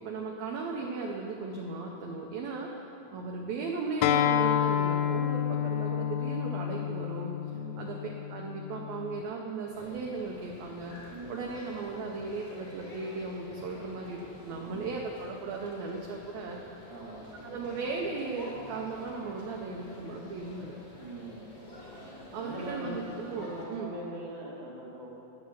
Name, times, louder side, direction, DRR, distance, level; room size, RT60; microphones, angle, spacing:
voice 1, 0.0-2.7 3.1-7.3 7.8-8.0 8.3-11.0 11.3-16.6 17.4-20.8 22.3-23.9, right 4 dB, 75° right, 0 dB, 2.0 m, -36 dB
Acoustic guitar, 4.0-9.2, left 10 dB, 80° left, 1.8 m, -29 dB
voice 2, 7.5-7.8 11.1-11.5 14.7-15.0 16.9-17.3 17.6-17.7 21.0-21.6 22.4-25.1, right 2 dB, 50° right, -4 dB, 2.9 m, -42 dB
sound 1, 9.7-23.7, left 1 dB, 30° left, 1.4 m, -48 dB
10.5 x 7.1 x 7.2 m, 2.9 s
omnidirectional pair, 3.5 m